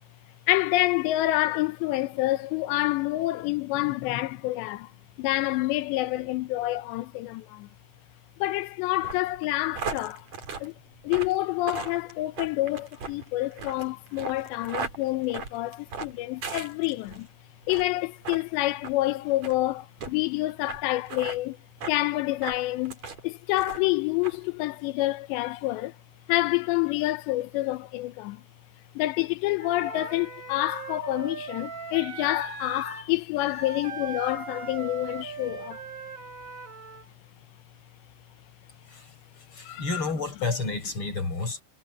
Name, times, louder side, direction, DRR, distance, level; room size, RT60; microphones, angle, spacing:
voice 1, 0.5-4.9 5.2-7.7 8.4-10.2 10.6-10.7 11.0-17.3 17.7-21.6 21.9-23.0 23.2-25.9 26.3-28.4 29.0-35.8 39.6-40.0, left 18 dB, 90° left, 3.1 m, -28 dB
sound 1, 9.0-17.2 17.6-17.9 18.2-18.4 18.8-19.0 19.4-19.6 20.0-20.1 20.7-20.8 21.1-21.4 21.8-22.0 22.4-23.2 23.5-23.9 24.2-24.4, right 5 dB, 40° right, 4.4 m, -37 dB
Wind instrument woodwind instrument, 29.6-37.1, right 4 dB, 20° right, 6.4 m, -39 dB
voice 2, 38.9-41.6, left 3 dB, 30° left, 5.8 m, -31 dB
omnidirectional pair, 4.9 m